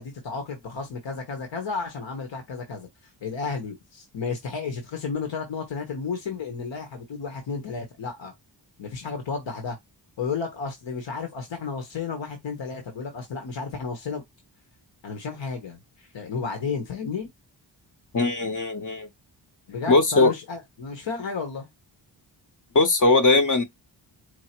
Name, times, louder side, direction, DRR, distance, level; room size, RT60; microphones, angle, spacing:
voice 1, 0.0-8.3 8.8-9.8 10.2-14.2 15.0-17.3 19.7-21.7, left 5 dB, 75° left, 1.2 m, -32 dB
voice 2, 18.1-19.1 19.9-20.3 22.7-23.6, left 3 dB, 45° left, 0.8 m, -19 dB
4.7 x 2.1 x 4.3 m
wide cardioid pair, 140°, 44 cm